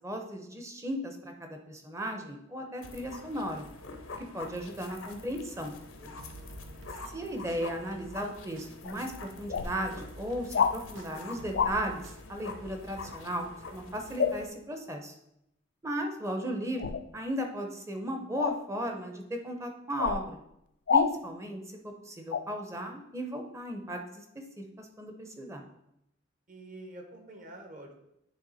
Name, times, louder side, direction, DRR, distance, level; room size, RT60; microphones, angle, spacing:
voice 1, 0.0-3.7 4.3-5.7 7.1-9.1 9.4-12.0 12.3-13.5 13.7-15.1 15.8-20.4 20.9-24.2 24.8-25.6, equal, 15° right, 4 dB, 0.7 m, -36 dB
sound 1, 2.8-14.5, left 3 dB, 90° left, 0.9 m, -46 dB
voice 2, 6.0-7.1 26.5-27.9, right 1 dB, 40° right, 2 dB, 1.2 m, -48 dB
sound 2, 6.2-8.3 8.6-13.1, right 2 dB, 75° right, 0.6 m, -49 dB
sound 3, 8.8-9.0 9.5-9.7 10.5-10.8 11.5-11.8 14.2-14.4 16.8-17.0 18.4-18.6 20.0-20.2 20.9-21.1 22.3-22.4, left 6 dB, 55° left, 0.3 m, -26 dB
9.4 x 3.4 x 4.1 m, 0.82 s
head